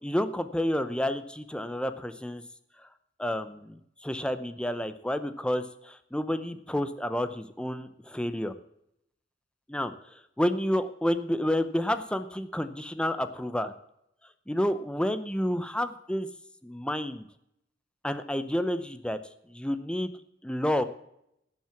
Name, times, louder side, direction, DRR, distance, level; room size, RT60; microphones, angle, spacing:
voice 1, 0.0-2.4 3.2-8.5 9.7-13.7 14.5-16.3 16.6-17.3 18.0-19.2 19.5-20.1 20.4-20.9, left 1 dB, 5° left, 11 dB, 0.6 m, -30 dB
11.5 x 7.6 x 7.0 m, 0.79 s
head